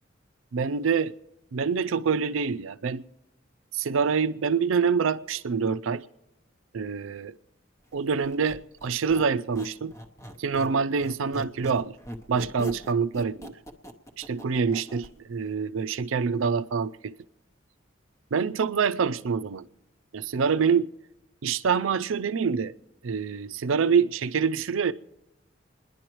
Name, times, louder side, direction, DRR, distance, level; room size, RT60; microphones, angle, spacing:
voice 1, 0.5-1.1 1.5-3.0 3.7-6.0 6.7-7.3 7.9-9.9 10.4-11.9 12.3-13.5 14.2-17.1 18.3-19.6 20.1-20.9 21.4-22.7 23.0-24.9, right 6 dB, 85° right, 0.5 m, -26 dB
Squeak, 8.2-10.8 11.0-15.1, equal, 15° left, 0.8 m, -41 dB
28.0 x 10.5 x 3.0 m
head